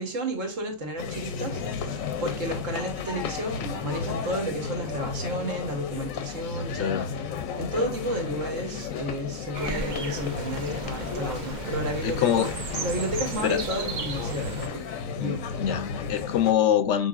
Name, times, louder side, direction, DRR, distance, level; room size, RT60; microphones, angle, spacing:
voice 1, 0.0-7.2 7.6-12.5 12.8-14.9 15.2-15.4, equal, 70° right, 1.6 m, -32 dB
sound 1, 1.0-16.5, left 5 dB, 90° left, 1.1 m, -33 dB
voice 2, 6.8-7.1 12.0-12.5 13.4-13.6 15.2-17.1, left 10 dB, 70° left, 0.8 m, -25 dB
sound 2, 9.5-14.7, right 4 dB, 45° right, 0.7 m, -35 dB
6.2 x 3.3 x 2.4 m
omnidirectional pair, 1.4 m